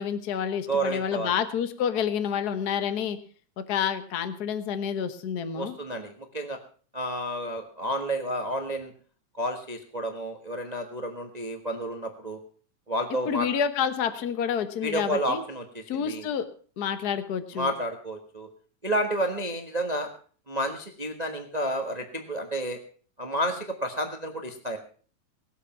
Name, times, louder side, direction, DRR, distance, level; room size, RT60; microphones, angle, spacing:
voice 1, 0.0-3.2 3.6-5.7 13.3-15.4 15.9-16.5 16.8-17.7, left 8 dB, 90° left, 11 dB, 0.8 m, -28 dB
voice 2, 0.7-1.3 5.5-6.6 6.9-8.9 9.4-12.4 12.9-13.5 14.8-16.2 17.5-18.5 18.8-20.1 20.5-22.8 23.2-24.8, right 1 dB, 50° right, 5 dB, 0.4 m, -30 dB
20.0 x 8.3 x 5.9 m, 0.43 s
omnidirectional pair, 3.6 m